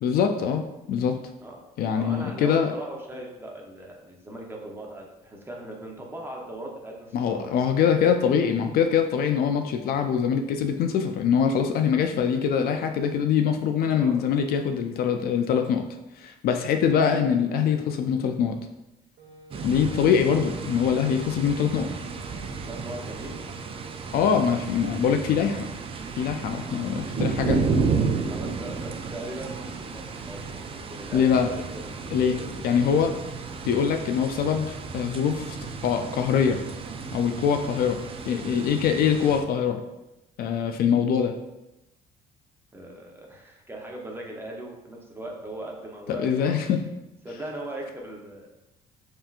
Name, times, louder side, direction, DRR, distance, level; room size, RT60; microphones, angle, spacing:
voice 1, 0.0-1.2 1.8-2.7 7.1-15.9 16.2-18.6 19.6-21.9 24.1-25.7 26.2-27.6 31.1-31.5 32.1-32.4 32.6-33.1 33.6-35.6 35.8-36.6 37.1-38.0 38.3-39.8 40.4-41.3 46.1-46.9, left 7 dB, 65° left, 6 dB, 0.4 m, -23 dB
voice 2, 1.9-7.6 13.9-14.1 22.7-23.4 28.3-32.8 42.7-46.5 47.2-48.5, right 1 dB, 15° right, -1 dB, 0.8 m, -39 dB
Wind instrument woodwind instrument, 19.2-24.8, left 1 dB, 75° right, 0.9 m, -50 dB
sound 1, 19.5-39.4, right 4 dB, 35° right, 0.4 m, -32 dB
5.4 x 2.8 x 2.4 m, 0.95 s
cardioid pair, 110°, 17 cm